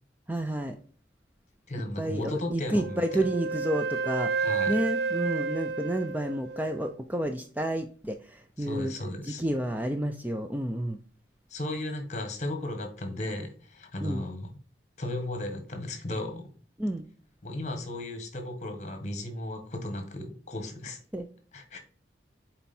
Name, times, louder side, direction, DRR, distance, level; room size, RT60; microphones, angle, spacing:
voice 1, 0.3-0.8 2.0-4.3 4.7-8.9 9.2-11.0 14.0-14.2 16.8-17.1 21.1-21.3, right 1 dB, 10° right, 6 dB, 0.4 m, -30 dB
voice 2, 1.7-3.0 4.4-4.7 8.6-9.4 11.5-14.5 15.0-16.5 17.4-21.0 21.5-21.8, left 1 dB, 40° left, 6 dB, 1.5 m, -35 dB
Wind instrument woodwind instrument, 2.7-6.9, right 4 dB, 65° right, 0.4 m, -31 dB
7.2 x 4.5 x 4.3 m, 0.43 s
head